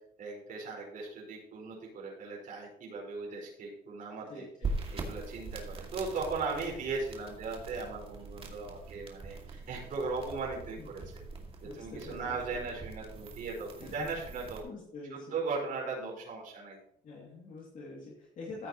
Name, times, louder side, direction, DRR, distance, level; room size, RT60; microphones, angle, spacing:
voice 1, 0.2-4.5 4.9-11.0 11.7-14.6 15.3-16.8, right 4 dB, 50° right, -5 dB, 4.8 m, -38 dB
voice 2, 4.3-4.7 10.8-10.9 11.6-12.7 13.8-14.1 14.6-15.4 16.0-16.2 17.0-18.7, left 3 dB, 50° left, -4 dB, 2.5 m, -46 dB
sound 1, 4.6-14.6, right 3 dB, 35° right, 2.1 m, -42 dB
14.5 x 8.1 x 3.0 m, 0.73 s
cardioid pair, 110°, 17 cm